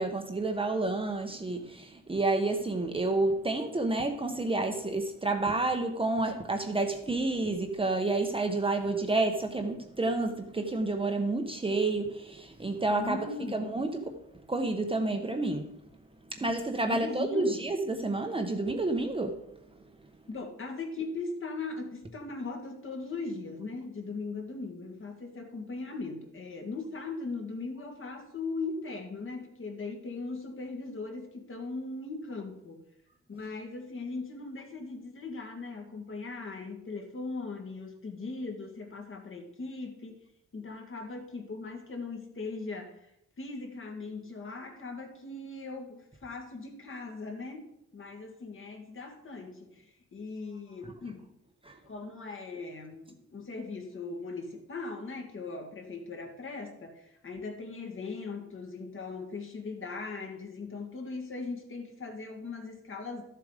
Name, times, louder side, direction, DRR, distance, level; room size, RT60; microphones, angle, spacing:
voice 1, 0.0-14.2 14.5-15.7 16.3-19.4 50.8-50.9 51.6-51.8, right 2 dB, 20° right, 4 dB, 0.9 m, -30 dB
voice 2, 13.0-13.6 16.8-17.7 20.3-32.8 33.3-40.2 40.5-43.1 43.4-51.3 51.9-63.2, left 3 dB, 45° left, 3 dB, 2.0 m, -39 dB
13.0 x 7.4 x 5.0 m, 0.79 s
wide cardioid pair, 165°, 29 cm